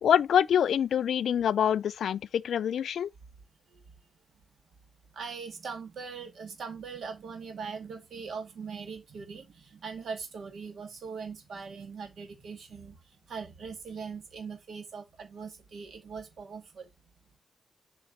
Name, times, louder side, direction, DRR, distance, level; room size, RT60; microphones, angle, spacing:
voice 1, 0.0-3.1, left 9 dB, 85° left, 0.4 m, -25 dB
voice 2, 5.1-16.9, right 5 dB, 70° right, 2.1 m, -41 dB
7.7 x 5.9 x 2.8 m
wide cardioid pair, 145°, 0 cm